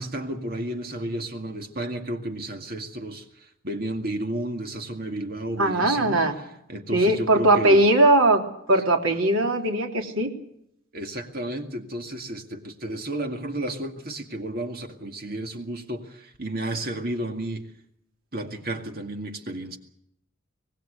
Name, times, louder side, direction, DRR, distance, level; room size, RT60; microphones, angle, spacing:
voice 1, 0.0-7.9 8.8-8.9 10.9-17.7 18.3-19.8, right 1 dB, 45° right, 4 dB, 2.1 m, -32 dB
voice 2, 5.6-6.3 6.9-10.3, right 1 dB, 85° right, 2 dB, 3.7 m, -20 dB
25.5 x 19.5 x 6.7 m, 0.77 s
head